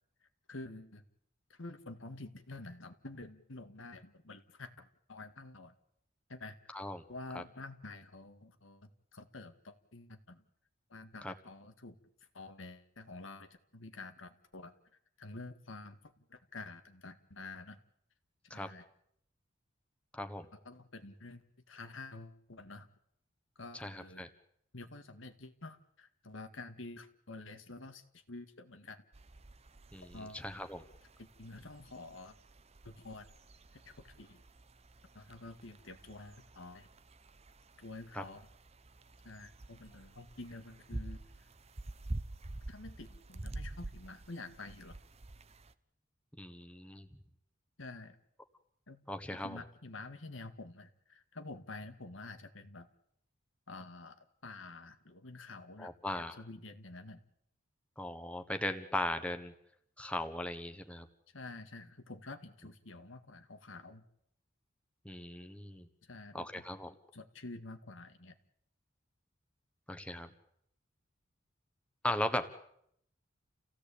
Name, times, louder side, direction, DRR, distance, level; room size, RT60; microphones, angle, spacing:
voice 1, 0.5-1.0 1.5-5.7 6.3-6.8 7.1-10.4 10.9-12.0 12.3-14.7 15.2-17.8 18.5-18.9 20.6-21.4 21.7-22.9 23.6-24.3 24.7-29.0 30.1-30.4 31.2-32.4 32.8-33.3 33.7-34.4 35.1-36.9 37.8-38.5 39.2-41.2 42.7-45.0 47.8-48.2 48.9-49.0 49.3-52.9 53.7-57.2 61.3-64.0 66.0-66.6 67.1-68.4, left 2 dB, 80° left, 8 dB, 2.0 m, -49 dB
voice 2, 6.7-7.0 7.3-7.4 11.2-11.3 18.5-18.7 20.1-20.4 23.7-24.3 29.9-30.8 38.1-38.2 46.4-47.1 49.1-49.6 55.8-56.3 58.0-59.5 60.0-61.1 65.0-65.9 66.3-66.9 69.9-70.3 72.0-72.6, left 1 dB, 5° left, 7 dB, 1.4 m, -38 dB
sound 1, 29.1-45.7, right 2 dB, 30° right, 0.9 m, -48 dB
29.0 x 16.5 x 8.6 m, 0.73 s
head